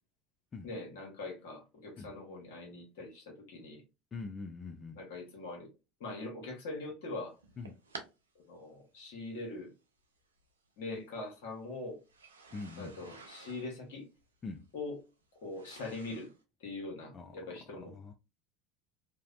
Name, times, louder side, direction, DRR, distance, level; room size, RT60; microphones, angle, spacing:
voice 1, 0.6-3.8 5.0-5.7 6.0-7.3 8.5-9.7 10.8-12.0 12.8-14.1 14.7-15.0 15.4-16.3 16.6-17.9, left 2 dB, 70° left, 0.9 m, -42 dB
voice 2, 4.1-5.0 7.6-7.7 12.5-13.2 14.4-14.7 17.1-17.4 17.7-18.1, left 4 dB, 30° left, 0.3 m, -44 dB
sound 1, 7.3-8.1 9.1-9.2 10.4-10.5 12.0-16.4, right 4 dB, 90° right, 0.4 m, -51 dB
2.6 x 2.0 x 2.3 m
hypercardioid pair, 75°, 0 cm